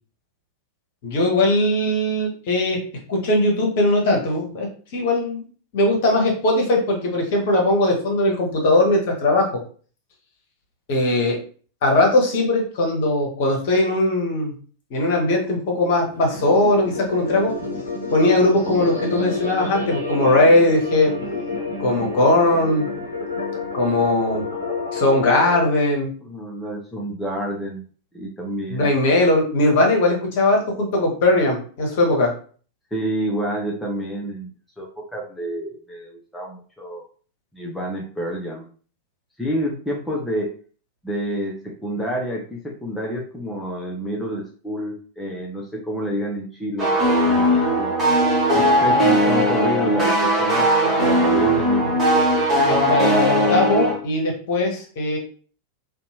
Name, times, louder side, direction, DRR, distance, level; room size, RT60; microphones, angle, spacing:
voice 1, 1.0-2.8 3.1-4.7 4.9-5.4 5.7-9.5 10.9-11.4 11.8-14.5 14.9-17.5 18.1-21.1 21.8-22.9 23.7-24.4 24.9-26.1 28.7-32.3 52.7-55.2, left 2 dB, 50° left, 0 dB, 0.9 m, -19 dB
sound 1, 16.0-25.6, left 3 dB, 85° left, 0.6 m, -29 dB
voice 2, 26.2-27.8 28.1-28.9 32.9-37.0 37.5-38.7 39.4-40.5 41.0-47.9 48.5-52.0, equal, 5° left, -2 dB, 0.5 m, -29 dB
sound 2, 46.8-53.9, equal, 25° right, 1.2 m, -18 dB
2.7 x 2.2 x 2.7 m, 0.43 s
figure-of-eight pair, 90°, 0 cm